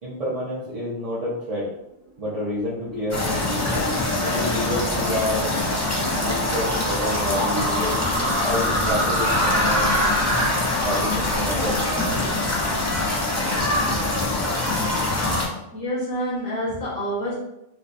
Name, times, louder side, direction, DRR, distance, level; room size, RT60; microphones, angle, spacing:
voice 1, 0.0-1.7 2.2-3.9 4.2-5.6 6.0-8.0 8.4-10.0 10.8-11.8 15.4-15.5, left 1 dB, 40° right, -8 dB, 0.8 m, -29 dB
sound 1, 2.5-10.5, right 1 dB, 70° right, 1.3 m, -29 dB
sound 2, 3.1-15.5, left 2 dB, 20° left, 0.6 m, -24 dB
voice 2, 13.9-14.2 15.2-15.4 15.7-17.3, equal, 70° left, -8 dB, 1.7 m, -28 dB
4.5 x 2.3 x 2.6 m, 0.86 s
omnidirectional pair, 1.1 m